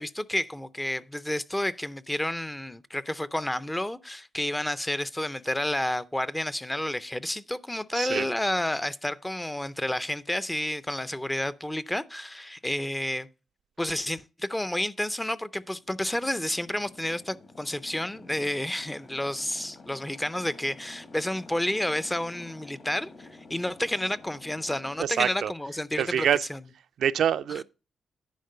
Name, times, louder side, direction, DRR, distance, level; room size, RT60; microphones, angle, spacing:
voice 1, 0.0-13.3 13.8-26.6, left 1 dB, 10° left, 0.5 m, -30 dB
voice 2, 7.9-8.3 25.0-25.5 26.0-26.5 27.0-27.6, right 9 dB, 75° right, 0.4 m, -25 dB
sound 1, 15.6-25.0, left 3 dB, 45° left, 1.7 m, -50 dB
10.5 x 4.4 x 6.5 m
cardioid pair, 105°, 0 cm